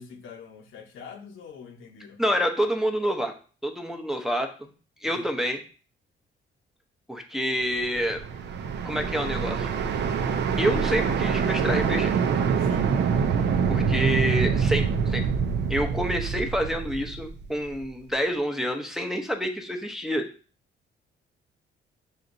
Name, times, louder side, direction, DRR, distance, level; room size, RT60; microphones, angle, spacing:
voice 1, 0.0-2.2 5.0-5.3 12.6-12.9, left 6 dB, 80° left, 3 dB, 1.0 m, -44 dB
voice 2, 2.2-3.3 3.6-4.5 5.0-5.6 7.1-8.2 8.8-9.7 10.6-12.1 13.7-15.2 15.7-20.3, equal, ahead, 3 dB, 0.7 m, -27 dB
sound 1, 7.8-17.8, right 6 dB, 60° right, 0.6 m, -25 dB
6.3 x 2.9 x 2.6 m, 0.38 s
cardioid pair, 90°, 20 cm